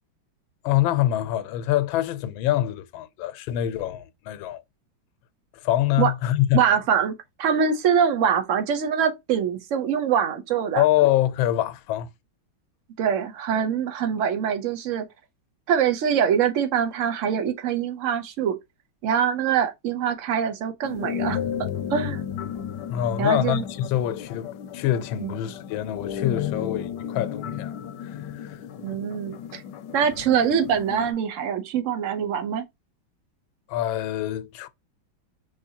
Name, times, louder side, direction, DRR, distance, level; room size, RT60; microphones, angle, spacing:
voice 1, 0.6-4.6 5.6-6.6 10.8-12.1 22.9-28.6 33.7-34.7, left 13 dB, 90° left, 1.4 m, -25 dB
voice 2, 6.5-7.1 7.4-10.8 13.0-15.1 15.7-18.5 19.0-21.4 21.9-22.2 23.2-23.6 25.2-25.4 28.8-29.6 29.9-32.6, right 8 dB, 70° right, 0.7 m, -24 dB
sound 1, 20.8-31.1, left 9 dB, 70° left, 1.1 m, -33 dB
5.4 x 3.2 x 2.8 m
omnidirectional pair, 2.1 m